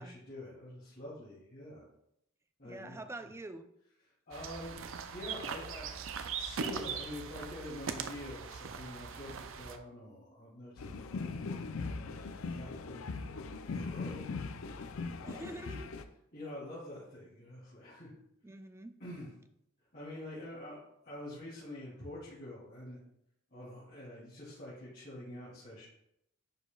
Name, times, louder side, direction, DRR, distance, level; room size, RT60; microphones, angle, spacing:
voice 1, 0.0-1.8 2.6-3.0 4.3-4.7 5.1-5.9 6.3-11.3 12.2-13.2 13.7-14.4 15.2-15.6 16.3-18.1 19.0-19.3 19.9-20.8 21.0-23.0 23.5-25.8, left 1 dB, 50° left, -11 dB, 2.8 m, -46 dB
voice 2, 2.6-3.7 15.2-15.9 18.4-18.9, right 2 dB, 15° right, 9 dB, 0.4 m, -45 dB
sound 1, 4.3-9.8, right 6 dB, 65° right, 0.5 m, -40 dB
sound 2, 10.8-16.0, left 4 dB, 75° left, 0.5 m, -40 dB
10.5 x 5.0 x 2.4 m, 0.79 s
head